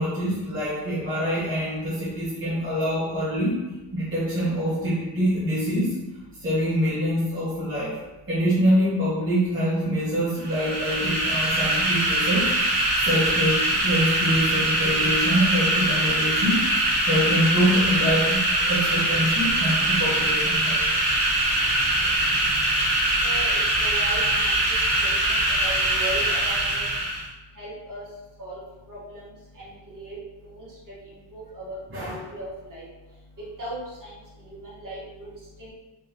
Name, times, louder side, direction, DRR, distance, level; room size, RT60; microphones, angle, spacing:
voice 1, 0.0-3.6 3.9-5.9 6.4-8.0 8.3-12.5 13.0-16.6 17.0-20.8 31.9-32.1, equal, 30° right, -10 dB, 0.9 m, -25 dB
sound 1, 10.4-27.3, right 1 dB, 65° right, 1.0 m, -23 dB
voice 2, 23.2-26.9 27.6-28.0 28.4-28.6 28.9-29.2 29.9-30.2 30.4-30.7 31.3-32.8 33.6-34.1 34.4-35.3 35.6-35.7, right 1 dB, 45° right, -7 dB, 1.5 m, -37 dB
3.7 x 3.5 x 2.9 m, 1.1 s
wide cardioid pair, 170°, 45 cm